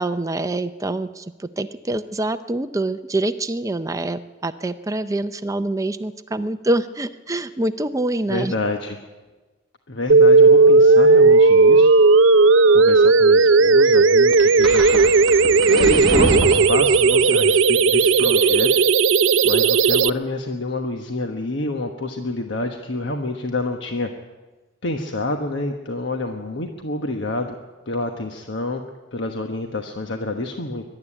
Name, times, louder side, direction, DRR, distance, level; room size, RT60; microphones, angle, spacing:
voice 1, 0.0-8.5, right 2 dB, 15° right, 11 dB, 0.5 m, -25 dB
voice 2, 8.3-9.0 9.9-11.9 12.7-15.0 15.7-18.7 19.4-24.1 24.8-27.6 27.9-28.8 29.1-30.8, left 2 dB, 65° left, 4 dB, 1.2 m, -28 dB
sound 1, 10.1-20.1, right 4 dB, 70° right, 0.5 m, -14 dB
sound 2, 14.3-17.2, right 1 dB, ahead, 6.2 m, -25 dB
22.0 x 12.0 x 9.9 m, 1.3 s
head